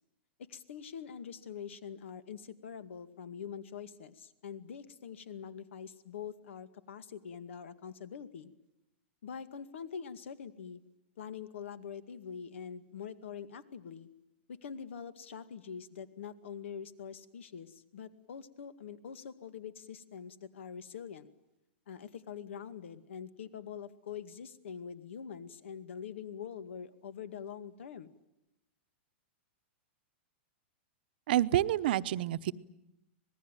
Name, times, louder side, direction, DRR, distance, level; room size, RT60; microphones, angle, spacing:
voice 1, 0.4-8.5 9.2-10.8 11.2-14.1 14.5-21.3 21.9-28.1, left 7 dB, 75° left, 12 dB, 2.1 m, -44 dB
voice 2, 31.3-32.5, right 13 dB, 50° right, 12 dB, 0.9 m, -28 dB
26.0 x 20.0 x 9.1 m, 0.89 s
supercardioid pair, 170°, 7 cm